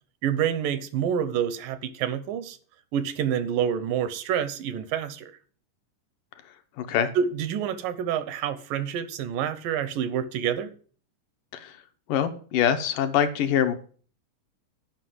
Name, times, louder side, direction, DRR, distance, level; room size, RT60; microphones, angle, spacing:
voice 1, 0.2-2.6 2.9-5.3 7.2-10.7, right 8 dB, 90° right, 2.6 m, -27 dB
voice 2, 6.8-7.1 11.5-11.8 12.1-13.7, left 9 dB, 80° left, 2.6 m, -24 dB
10.5 x 5.6 x 7.7 m
omnidirectional pair, 3.8 m